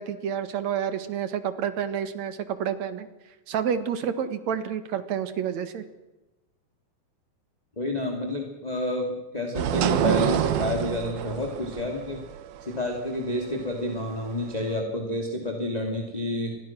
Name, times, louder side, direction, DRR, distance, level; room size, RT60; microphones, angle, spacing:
voice 1, 0.0-3.1 3.5-5.9, right 8 dB, 55° right, 11 dB, 2.3 m, -29 dB
voice 2, 7.8-12.2 12.6-16.6, left 1 dB, 10° left, 2 dB, 2.3 m, -29 dB
sound 1, 9.6-14.8, right 10 dB, 70° right, 2.9 m, -27 dB
29.0 x 22.0 x 6.2 m, 1.1 s
omnidirectional pair, 4.5 m